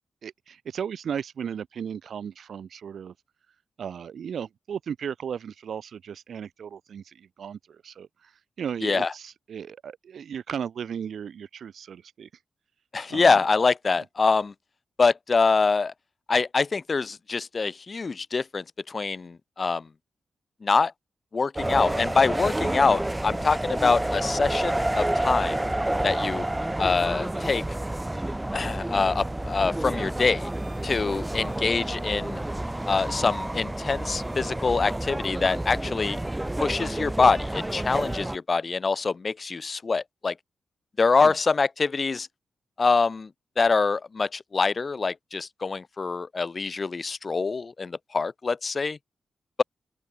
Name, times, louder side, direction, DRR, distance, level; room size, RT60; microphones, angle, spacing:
voice 1, 0.2-3.1 3.8-8.3 8.6-12.3 13.1-13.4 41.2-41.4, right 8 dB, 70° right, 3.9 m, -35 dB
voice 2, 8.8-9.1 12.9-14.5 15.0-15.9 16.3-19.9 20.6-20.9 21.3-25.6 26.0-26.5 26.8-27.6 28.5-30.5 30.8-32.4 32.9-36.2 36.6-40.3 41.0-42.3 42.8-43.3 43.6-49.0, left 4 dB, 35° left, 1.0 m, -25 dB
sound 1, 21.6-38.4, right 1 dB, 10° right, 3.8 m, -29 dB
open air
wide cardioid pair, 145°, 0 cm